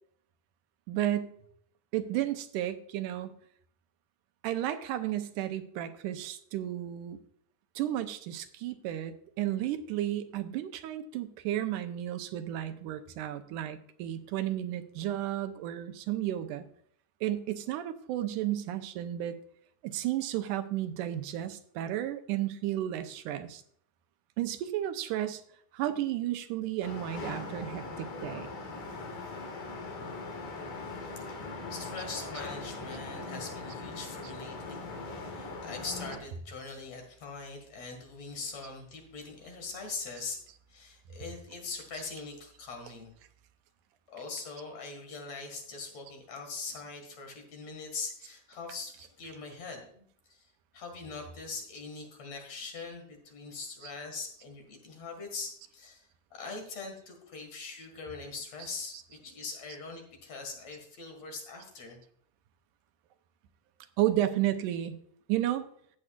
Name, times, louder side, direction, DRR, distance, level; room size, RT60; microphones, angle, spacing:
voice 1, 0.9-1.3 1.9-3.3 4.4-7.2 7.8-16.7 17.2-19.4 19.8-23.6 24.4-25.4 25.7-28.5 64.0-65.0 65.3-65.7, right 12 dB, 90° right, 9 dB, 2.3 m, -33 dB
sound 1, 26.8-36.2, left 3 dB, 75° left, 3.4 m, -40 dB
voice 2, 31.7-40.4 40.7-43.1 44.1-50.4 50.7-62.0, left 4 dB, 55° left, 3 dB, 2.9 m, -42 dB
14.5 x 8.6 x 2.4 m, 0.63 s
omnidirectional pair, 3.6 m